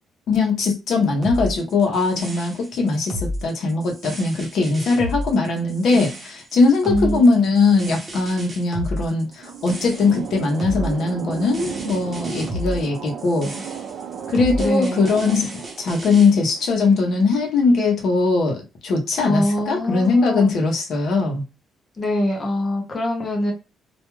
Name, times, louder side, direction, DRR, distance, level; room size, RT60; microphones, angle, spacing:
voice 1, 0.3-13.5 14.3-15.5 15.8-21.4, left 3 dB, 55° left, 0.7 m, -20 dB
sound 1, 1.2-16.3, left 1 dB, 25° right, 0.7 m, -32 dB
voice 2, 6.8-7.4 14.6-15.1 19.2-20.5 22.0-23.5, left 1 dB, 20° left, 0.6 m, -24 dB
sound 2, 9.1-17.5, right 7 dB, 75° right, 0.4 m, -35 dB
2.3 x 2.2 x 3.0 m
cardioid pair, 170°, 0 cm